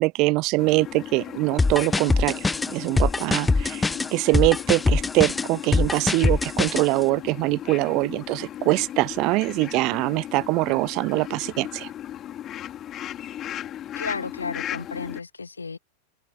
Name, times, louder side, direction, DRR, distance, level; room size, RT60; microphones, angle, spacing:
voice 1, 0.0-11.9, right 23 dB, 40° right, 0.6 m, -23 dB
sound 1, 0.6-15.2, left 11 dB, 30° left, 4.4 m, -36 dB
sound 2, 1.6-6.9, left 3 dB, 10° left, 0.5 m, -22 dB
voice 2, 14.0-15.8, left 4 dB, 75° left, 2.3 m, -33 dB
figure-of-eight pair, 90°, 0 cm